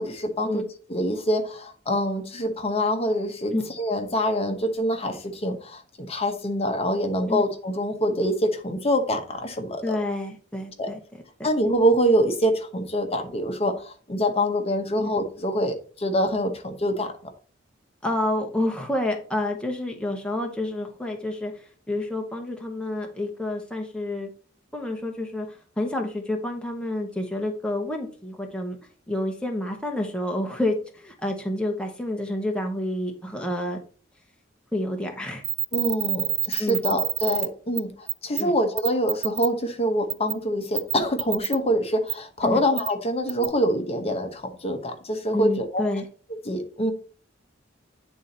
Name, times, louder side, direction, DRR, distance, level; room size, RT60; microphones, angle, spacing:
voice 1, 0.0-10.0 10.8-10.9 11.4-17.1 35.7-45.8 46.5-46.9, equal, 30° left, 6 dB, 1.0 m, -25 dB
voice 2, 9.8-11.0 15.0-15.1 18.0-24.3 24.7-28.8 29.1-33.8 34.7-35.4 36.6-36.8 38.4-38.5 42.4-42.6 45.3-46.1, left 1 dB, 5° left, 2 dB, 0.9 m, -29 dB
sound 1, 35.4-37.5 37.8-37.9 38.1-38.4 38.8-39.5 40.1-40.3 40.8-41.6 42.1-42.2 42.8-42.9 43.3-43.5, right 14 dB, 70° right, 0.4 m, -26 dB
9.0 x 3.9 x 4.2 m, 0.42 s
head